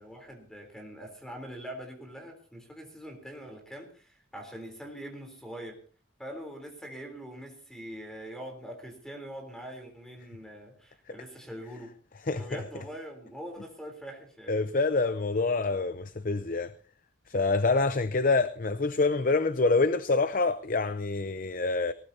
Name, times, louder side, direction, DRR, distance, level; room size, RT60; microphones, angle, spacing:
voice 1, 0.0-5.8 6.2-11.9 12.3-14.6, equal, 5° left, 3.6 m, -43 dB
voice 2, 14.5-16.7 17.3-21.9, left 3 dB, 40° left, 0.6 m, -26 dB
19.0 x 18.5 x 2.8 m
head